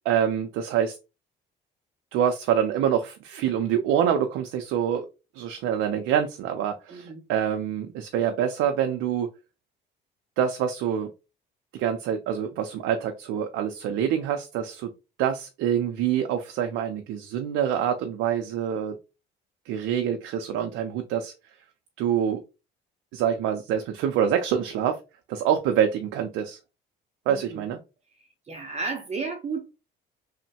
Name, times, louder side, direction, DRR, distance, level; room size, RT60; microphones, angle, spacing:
voice 1, 0.1-1.0 2.1-5.1 5.3-9.3 10.4-11.1 11.7-14.9 15.2-19.0 19.7-21.3 22.0-22.4 23.1-25.0 25.3-26.6 27.3-27.8, right 9 dB, 80° right, 6 dB, 0.5 m, -26 dB
voice 2, 6.9-7.2 27.3-27.8 28.5-29.7, right 4 dB, 35° right, 4 dB, 0.6 m, -33 dB
3.0 x 2.1 x 2.7 m, 0.28 s
cardioid pair, 90°, 20 cm